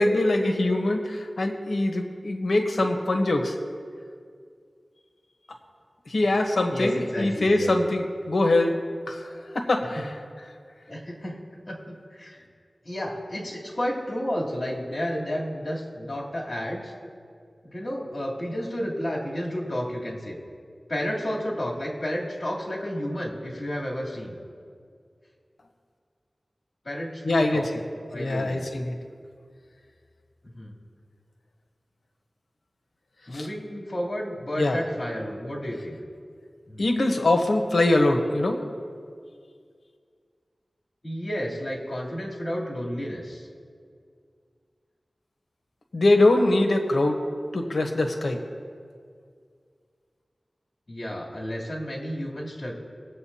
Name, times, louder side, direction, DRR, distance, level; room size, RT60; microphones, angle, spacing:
voice 1, 0.0-3.6 6.1-8.8 9.1-10.1 27.2-27.8 28.1-29.0 33.3-33.5 34.6-34.8 36.8-38.6 45.9-47.2 47.5-48.4, left 2 dB, 85° left, 4 dB, 1.0 m, -23 dB
voice 2, 6.7-7.7 10.9-11.4 11.7-12.4 12.8-16.9 17.6-20.4 20.9-24.4 26.8-27.7 28.1-28.7 30.4-30.7 33.3-36.0 36.7-36.8 41.0-43.5 50.9-52.7, equal, 50° left, -5 dB, 3.1 m, -31 dB
20.0 x 7.9 x 2.8 m, 2.2 s
wide cardioid pair, 55°, 0 cm